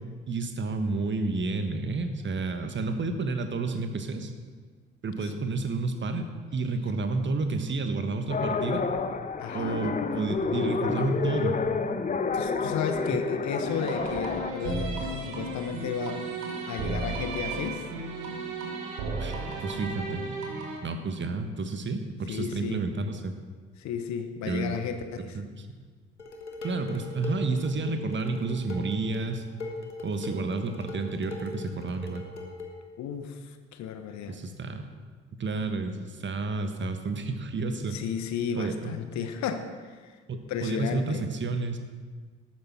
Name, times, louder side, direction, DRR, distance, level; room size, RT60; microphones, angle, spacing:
voice 1, 0.3-4.3 5.0-8.8 9.5-11.6 19.2-19.3 19.6-20.2 20.8-23.4 24.5-24.9 25.3-25.7 26.6-29.4 30.0-32.2 34.3-34.9 35.4-38.0 38.6-38.9 40.3-41.8, right 3 dB, 35° right, 7 dB, 1.4 m, -30 dB
sound 1, 8.3-14.5, left 5 dB, 25° left, 0.8 m, -29 dB
voice 2, 9.4-9.8 12.3-16.2 16.7-17.8 22.3-22.8 23.8-25.4 27.2-27.3 33.0-34.4 37.9-40.1 40.5-41.3, left 7 dB, 55° left, 8 dB, 1.1 m, -33 dB
sound 2, 13.6-20.8, right 3 dB, 65° right, 1.9 m, -34 dB
Dishes pots and pans, 26.2-32.8, left 3 dB, 85° left, 1.0 m, -40 dB
12.0 x 9.0 x 5.9 m, 1.5 s
figure-of-eight pair, 45°, 34 cm